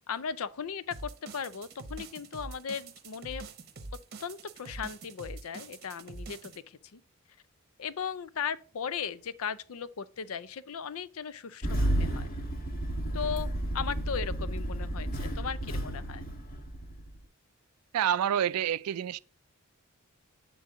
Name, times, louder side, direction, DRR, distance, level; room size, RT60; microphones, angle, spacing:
voice 1, 0.1-3.5 4.2-7.0 7.8-12.3 13.1-13.5 13.7-16.2, left 7 dB, 75° left, 0.5 m, -37 dB
sound 1, 0.9-6.6, right 3 dB, 45° right, 0.9 m, -44 dB
Engine starting, 11.6-17.2, right 1 dB, 40° left, 1.2 m, -32 dB
voice 2, 17.9-19.2, right 9 dB, 90° right, 0.3 m, -28 dB
8.2 x 3.8 x 3.6 m
head